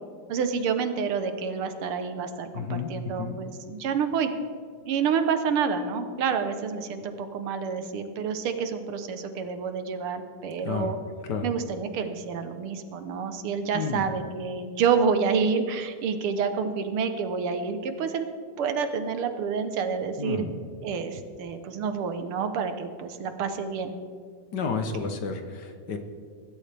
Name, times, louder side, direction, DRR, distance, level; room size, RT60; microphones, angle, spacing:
voice 1, 0.3-4.3 4.8-11.0 11.4-18.3 18.6-20.4 20.8-23.9, right 6 dB, 80° right, 8 dB, 1.9 m, -28 dB
voice 2, 2.5-3.4 10.6-10.9 11.2-11.5 13.7-14.1 20.2-20.5 24.5-26.0, left 5 dB, 60° left, 6 dB, 1.5 m, -31 dB
23.0 x 12.5 x 3.4 m, 2.1 s
omnidirectional pair, 2.4 m